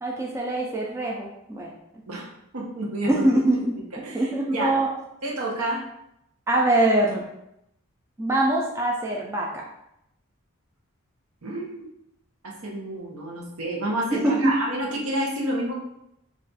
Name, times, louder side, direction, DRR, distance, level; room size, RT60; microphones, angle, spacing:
voice 1, 0.0-1.7 3.1-3.8 4.1-4.9 6.5-7.3 8.2-9.6 14.1-14.4, right 1 dB, 10° right, -2 dB, 0.3 m, -23 dB
voice 2, 2.1-3.2 4.0-4.7 5.2-5.8 11.4-11.9 12.4-15.7, right 1 dB, 85° right, -2 dB, 0.8 m, -29 dB
2.4 x 2.3 x 3.9 m, 0.81 s
head